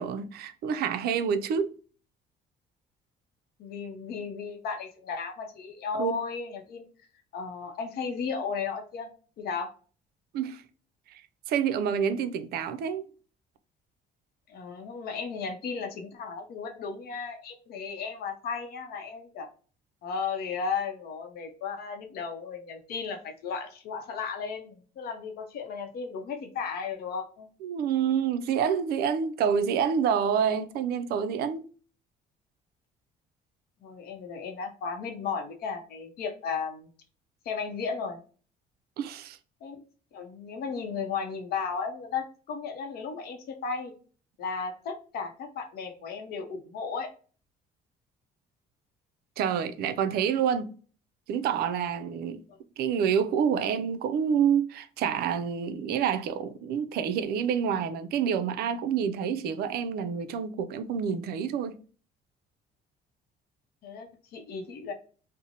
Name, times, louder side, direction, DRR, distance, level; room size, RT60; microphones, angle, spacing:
voice 1, 0.0-1.7 5.9-6.1 10.3-10.6 11.1-11.2 11.5-13.1 27.6-31.7 39.0-39.4 49.4-50.7 51.3-52.4 52.8-61.8, right 7 dB, 65° right, 0.4 m, -28 dB
voice 2, 3.6-6.8 7.3-9.1 9.4-9.7 14.5-19.5 20.0-27.5 33.8-36.9 37.4-38.2 39.6-39.8 40.1-43.9 44.4-47.1 52.5-52.6 63.8-64.9, left 5 dB, 65° left, 0.7 m, -35 dB
2.7 x 2.0 x 2.7 m
cardioid pair, 110°, 17 cm